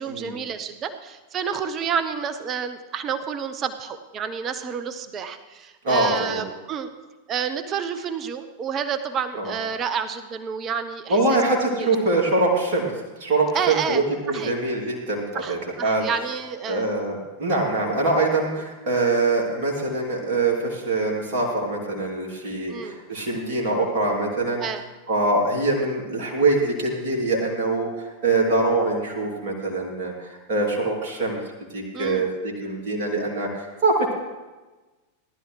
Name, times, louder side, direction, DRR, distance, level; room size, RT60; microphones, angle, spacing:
voice 1, 0.0-6.9 7.3-11.4 11.8-11.9 13.5-14.0 14.3-14.5 15.3-16.9 22.7-23.0 24.6-24.8 31.9-32.3, right 7 dB, 30° right, 10 dB, 0.8 m, -29 dB
voice 2, 5.8-6.4 9.4-9.5 11.1-12.9 13.2-16.0 16.7-24.6 25.1-27.9 28.2-31.4 31.7-34.1, right 2 dB, 50° right, -2 dB, 2.9 m, -23 dB
18.5 x 11.5 x 3.3 m, 1.2 s
figure-of-eight pair, 90°, 0 cm